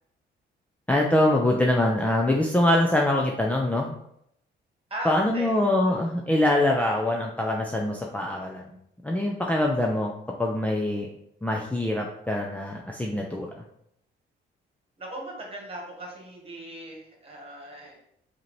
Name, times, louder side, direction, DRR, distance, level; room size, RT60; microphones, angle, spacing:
voice 1, 0.9-4.0 5.0-8.6 9.0-10.1 10.4-11.1 11.4-13.5, left 1 dB, 5° left, -1 dB, 0.6 m, -24 dB
voice 2, 4.9-5.6 5.9-6.1 15.0-18.0, right 1 dB, 30° right, -1 dB, 1.7 m, -38 dB
4.8 x 2.9 x 3.2 m, 0.73 s
cardioid pair, 90°, 20 cm